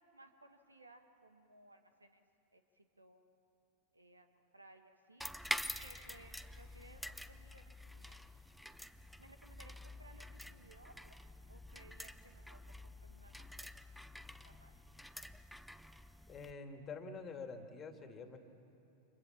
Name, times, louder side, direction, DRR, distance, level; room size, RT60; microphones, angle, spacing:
voice 1, 0.1-2.2 2.5-3.4 3.9-5.2 5.8-8.3 9.2-11.2 11.5-13.9 14.4-14.7, right 1 dB, 80° right, 7 dB, 1.6 m, -62 dB
sound 1, 5.2-16.5, left 1 dB, ahead, 0.7 m, -47 dB
voice 2, 16.3-18.4, left 4 dB, 25° left, 6 dB, 2.4 m, -47 dB
29.5 x 26.5 x 7.3 m, 2.8 s
figure-of-eight pair, 90°, 0 cm